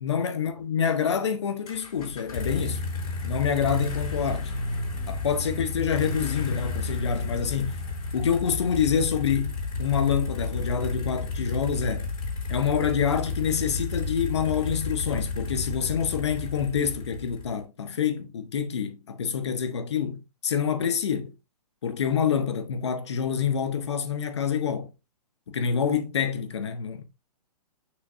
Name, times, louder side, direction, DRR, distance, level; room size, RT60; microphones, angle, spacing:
voice 1, 0.0-2.8 3.2-4.5 5.1-7.8 8.1-12.1 12.5-21.3 21.8-24.9 25.5-27.0, left 7 dB, 45° left, 0.9 m, -27 dB
sound 1, 1.7-17.6, left 3 dB, 65° left, 4.0 m, -32 dB
6.4 x 5.8 x 2.5 m
hypercardioid pair, 180°, 20 cm